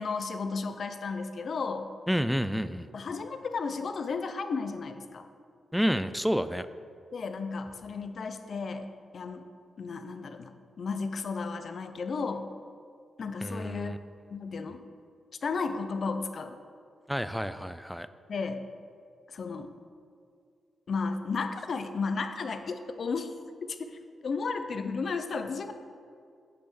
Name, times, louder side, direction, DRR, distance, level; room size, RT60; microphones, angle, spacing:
voice 1, 0.0-1.9 2.9-5.2 7.1-9.4 9.8-12.5 13.2-13.9 14.3-14.8 15.4-16.6 18.3-18.6 19.3-19.7 20.9-23.3 23.7-25.7, left 4 dB, 60° left, 8 dB, 0.5 m, -34 dB
voice 2, 2.1-2.9 5.7-6.7 13.4-14.0 17.1-18.1, equal, ahead, 13 dB, 0.3 m, -29 dB
8.4 x 3.4 x 6.1 m, 2.3 s
supercardioid pair, 50°, 0 cm